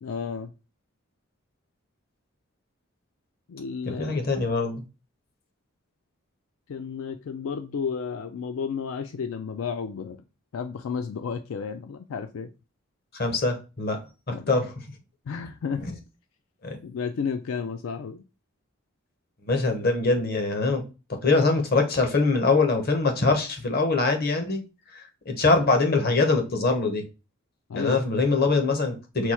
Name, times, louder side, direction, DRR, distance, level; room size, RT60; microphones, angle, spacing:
voice 1, 0.0-0.5 3.5-4.2 6.7-10.2 10.5-12.5 14.3-14.6 15.3-16.0 16.8-18.2 27.7-28.0, left 6 dB, 75° left, 0.3 m, -32 dB
voice 2, 3.9-4.8 13.1-14.0 14.3-14.7 16.6-16.8 19.5-20.8 21.1-24.6 24.9-27.0 27.7-29.3, left 3 dB, 45° left, 0.9 m, -23 dB
4.5 x 2.3 x 4.2 m
head